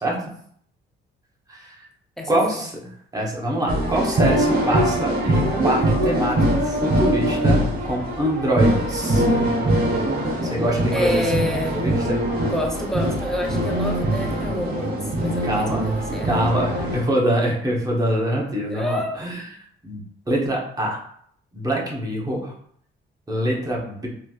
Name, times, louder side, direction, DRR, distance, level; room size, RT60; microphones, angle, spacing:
voice 1, 1.5-1.9 2.3-2.7 3.1-9.2 10.4-11.4 11.7-12.2 15.4-15.8 16.2-19.5 19.8-20.0 20.3-21.0 21.5-22.5 23.3-24.1, right 1 dB, 20° right, -2 dB, 1.0 m, -24 dB
sound 1, 3.7-17.0, right 1 dB, 50° right, 0.8 m, -22 dB
voice 2, 10.9-11.8 12.4-14.9 15.2-16.4 18.7-19.2, equal, ahead, 1 dB, 0.7 m, -28 dB
3.1 x 2.6 x 2.4 m, 0.63 s
cardioid pair, 90°, 20 cm